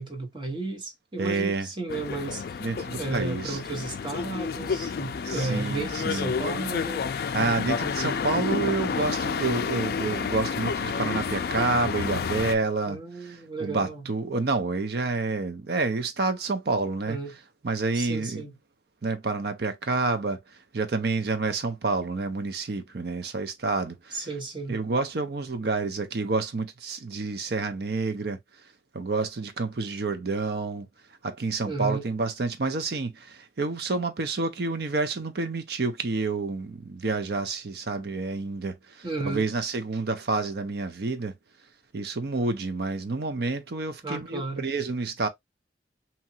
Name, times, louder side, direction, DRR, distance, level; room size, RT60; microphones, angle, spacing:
voice 1, 0.0-2.6 3.0-7.1 12.9-14.1 17.1-17.4 17.9-18.5 24.1-24.8 31.6-32.1 39.0-39.5 44.0-44.7, right 3 dB, 25° right, 1.0 m, -33 dB
voice 2, 1.2-1.7 2.6-3.6 5.3-6.3 7.3-13.0 13.6-17.2 17.6-18.4 19.0-20.4 20.7-24.3 24.7-28.4 28.9-30.9 31.2-41.4 41.9-45.3, right 3 dB, 60° right, 0.6 m, -29 dB
sound 1, 1.9-12.6, left 5 dB, 55° left, 0.3 m, -30 dB
2.9 x 2.4 x 2.7 m
head